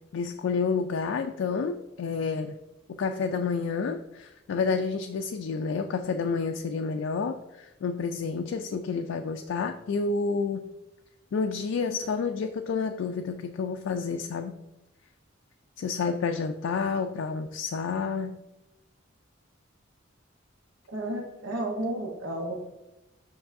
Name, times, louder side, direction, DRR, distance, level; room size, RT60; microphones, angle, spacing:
voice 1, 0.1-2.6 3.0-10.6 11.3-14.5 15.8-18.4, left 5 dB, 70° left, 6 dB, 0.3 m, -29 dB
voice 2, 20.9-22.5, right 1 dB, 75° right, 1 dB, 0.9 m, -32 dB
7.0 x 5.3 x 2.6 m, 0.95 s
head